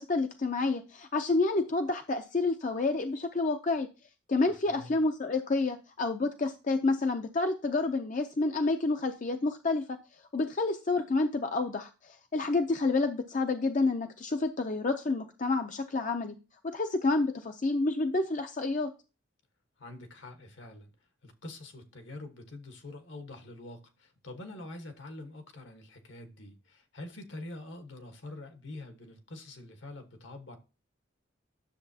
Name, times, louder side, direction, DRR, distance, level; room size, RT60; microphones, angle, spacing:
voice 1, 0.0-3.9 4.3-9.9 10.3-16.4 16.6-18.9, left 3 dB, 40° left, 0.5 m, -29 dB
voice 2, 4.7-5.0 19.8-20.9 21.2-30.6, left 2 dB, 70° left, 1.3 m, -45 dB
10.0 x 6.8 x 2.8 m
head